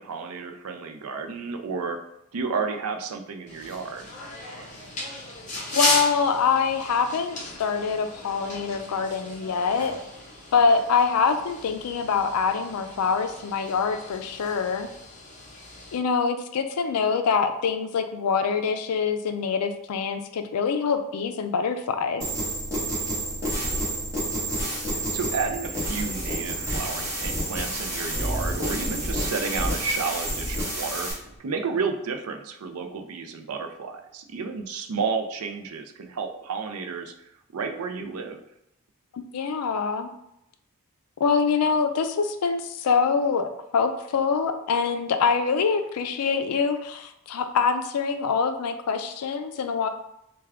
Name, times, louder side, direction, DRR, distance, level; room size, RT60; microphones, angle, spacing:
voice 1, 0.0-2.0 2.3-4.1 24.9-31.1 31.4-37.1 37.5-38.4, right 5 dB, 75° right, 6 dB, 0.4 m, -31 dB
sound 1, 3.5-16.0, left 2 dB, 35° left, 0.7 m, -35 dB
voice 2, 5.7-9.9 10.5-14.9 15.9-22.2 39.1-40.1 41.2-49.9, left 5 dB, 90° left, 8 dB, 0.4 m, -25 dB
sound 2, 22.2-31.1, right 1 dB, 15° right, 1.1 m, -29 dB
sound 3, 25.6-31.4, right 1 dB, 60° left, 0.9 m, -44 dB
3.3 x 2.3 x 3.5 m, 0.83 s
head